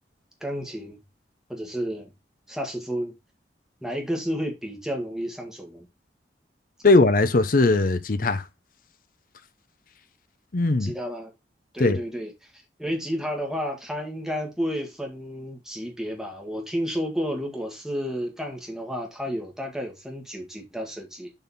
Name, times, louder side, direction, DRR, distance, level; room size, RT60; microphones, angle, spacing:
voice 1, 0.4-1.0 1.5-2.1 2.5-3.1 3.8-5.8 10.8-11.3 11.7-21.3, equal, 5° right, 1.6 m, -31 dB
voice 2, 6.8-8.4 10.5-10.9 11.8-12.0, left 3 dB, 50° left, 0.7 m, -19 dB
7.1 x 4.0 x 4.1 m
head